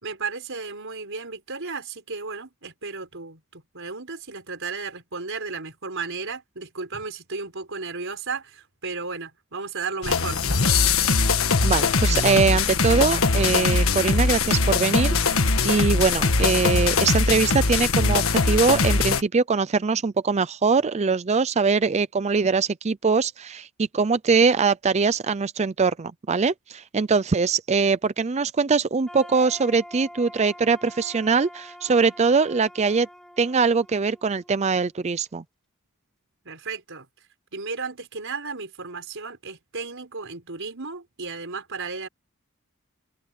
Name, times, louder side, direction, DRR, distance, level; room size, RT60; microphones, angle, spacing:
voice 1, 0.0-10.4 36.4-37.1 37.5-42.1, right 4 dB, 60° right, 5.4 m, -34 dB
sound 1, 10.0-19.2, left 4 dB, 65° left, 1.6 m, -21 dB
voice 2, 11.6-33.1 33.4-35.4, right 4 dB, 30° right, 0.5 m, -22 dB
sound 2, 29.0-35.0, equal, 5° left, 5.9 m, -45 dB
open air
head